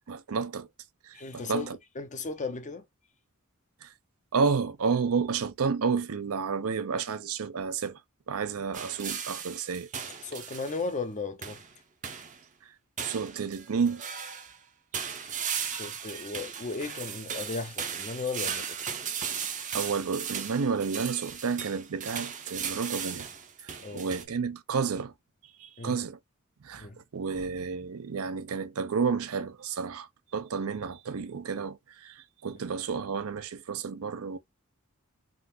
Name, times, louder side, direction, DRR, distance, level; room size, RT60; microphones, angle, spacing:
voice 1, 0.1-0.7 1.1-1.8 3.8-3.9 4.3-8.0 8.3-9.9 13.0-14.0 19.7-23.3 23.6-25.1 25.6-26.2 26.6-26.9 27.1-30.1 30.3-34.4, right 5 dB, 75° right, 0.5 m, -31 dB
voice 2, 1.1-2.8 10.2-11.6 15.8-19.0 23.8-24.1 25.8-26.0 26.8-27.0 27.3-27.6, left 3 dB, 35° left, 0.6 m, -36 dB
sound 1, 8.7-10.9 11.4-11.7 12.0-12.4 13.0-14.6 14.9-24.2, right 7 dB, 35° right, 0.6 m, -37 dB
3.7 x 2.5 x 2.5 m
head